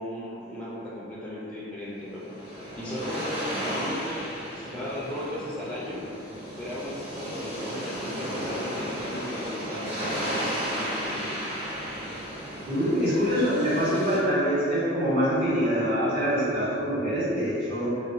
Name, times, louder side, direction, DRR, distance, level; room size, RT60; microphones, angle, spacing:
voice 1, 0.0-2.2 2.8-6.0 6.6-11.3, left 1 dB, 5° left, -9 dB, 0.4 m, -36 dB
sound 1, 1.9-14.2, equal, 30° right, 0.7 m, -34 dB
voice 2, 12.7-18.0, equal, 50° right, -14 dB, 1.2 m, -25 dB
2.6 x 2.1 x 2.7 m, 2.4 s
head